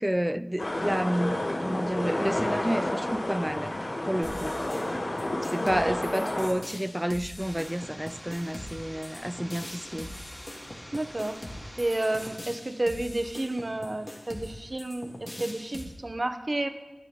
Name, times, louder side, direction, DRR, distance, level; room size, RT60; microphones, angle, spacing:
voice 1, 0.0-3.8 4.1-4.6 5.5-10.1, equal, 10° right, 0.5 m, -30 dB
sound 1, 0.6-6.5, left 1 dB, 80° left, 3.1 m, -30 dB
sound 2, 4.2-15.8, left 1 dB, 45° left, 3.0 m, -42 dB
voice 2, 5.8-6.3 10.9-11.4 11.8-16.7, right 1 dB, 50° right, 1.3 m, -31 dB
sound 3, 7.4-12.4, equal, 15° left, 3.7 m, -46 dB
24.0 x 10.0 x 4.0 m
wide cardioid pair, 40°, 0 cm